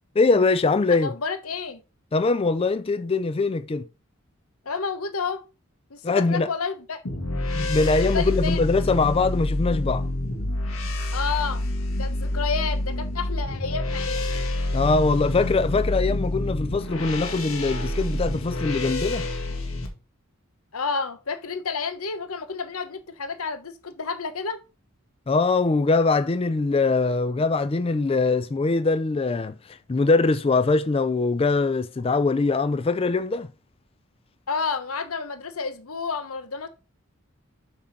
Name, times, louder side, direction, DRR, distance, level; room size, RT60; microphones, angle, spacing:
voice 1, 0.2-1.1 2.1-3.9 6.0-6.5 7.6-10.1 14.7-19.3 25.3-33.5, left 3 dB, 25° left, 0.3 m, -22 dB
voice 2, 1.0-1.8 4.6-5.4 5.9-7.0 7.9-8.6 11.1-11.6 12.0-14.3 20.7-24.6 34.5-36.7, left 5 dB, 90° left, 1.1 m, -30 dB
sound 1, 7.0-19.9, left 1 dB, 70° left, 1.9 m, -27 dB
7.6 x 3.7 x 5.8 m
head